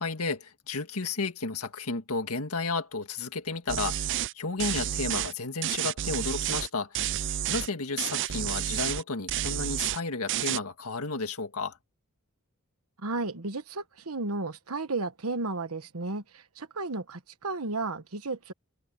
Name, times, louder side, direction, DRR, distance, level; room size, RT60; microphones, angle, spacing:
voice 1, 0.0-7.2 7.5-11.8, left 3 dB, 85° left, 1.9 m, -33 dB
sound 1, 3.7-4.3 4.6-5.3 5.6-6.7 6.9-7.7 8.0-9.0 9.3-10.0 10.3-10.6, right 11 dB, 60° right, 0.5 m, -30 dB
voice 2, 13.0-16.2 16.6-18.5, right 3 dB, 80° right, 1.3 m, -33 dB
open air
head